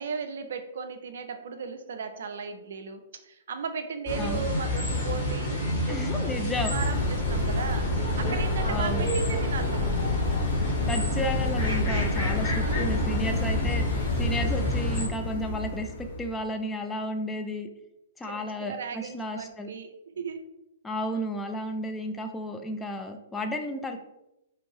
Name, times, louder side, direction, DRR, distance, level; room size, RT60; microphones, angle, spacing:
voice 1, 0.0-9.9 12.6-13.2 18.2-20.5, right 5 dB, 65° right, 7 dB, 0.4 m, -36 dB
sound 1, 4.1-15.1, left 1 dB, 40° left, 1.4 m, -29 dB
voice 2, 5.9-6.8 8.7-9.1 10.9-13.8 14.2-15.9 16.2-17.7 18.2-19.7 20.8-24.0, equal, 10° left, 5 dB, 0.3 m, -32 dB
sound 2, 6.8-16.4, left 2 dB, 55° left, 0.6 m, -30 dB
2.7 x 2.5 x 3.2 m, 0.88 s
figure-of-eight pair, 120°, 0 cm